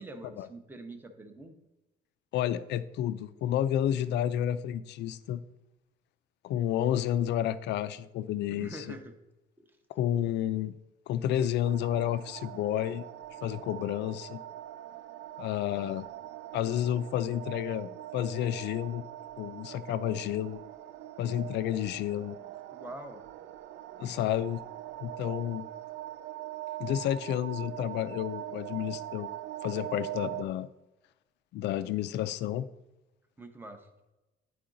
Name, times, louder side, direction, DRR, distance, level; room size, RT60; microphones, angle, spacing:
voice 1, 0.0-1.5 8.5-9.1 9.6-9.7 22.7-23.2 33.4-33.9, right 2 dB, 10° right, 6 dB, 0.6 m, -44 dB
voice 2, 2.3-5.4 6.4-8.8 9.9-10.8 11.1-13.0 13.4-14.4 15.4-16.1 16.5-19.0 19.4-20.6 21.2-22.4 24.0-24.6 25.0-25.6 26.8-29.3 29.6-30.7 31.5-32.7, left 11 dB, 70° left, 14 dB, 0.4 m, -30 dB
sound 1, 11.6-30.4, right 14 dB, 80° right, 0.4 m, -42 dB
10.0 x 4.7 x 3.8 m, 1.0 s
cardioid pair, 170°, 19 cm